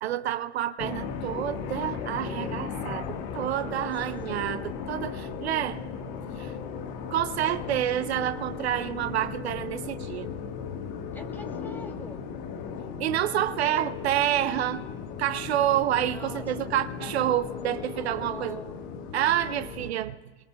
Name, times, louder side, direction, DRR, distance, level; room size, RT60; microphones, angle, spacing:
voice 1, 0.0-5.8 6.4-6.5 7.1-10.3 13.0-14.8 15.2-18.6 19.1-20.2, right 12 dB, 70° right, 0.7 m, -28 dB
sound 1, 0.8-19.9, left 6 dB, 55° left, 1.5 m, -36 dB
voice 2, 3.3-3.9 4.3-4.5 11.1-12.3 16.0-16.7 17.9-18.8, left 1 dB, 5° left, 2.7 m, -46 dB
29.5 x 21.5 x 2.3 m
figure-of-eight pair, 80°, 33 cm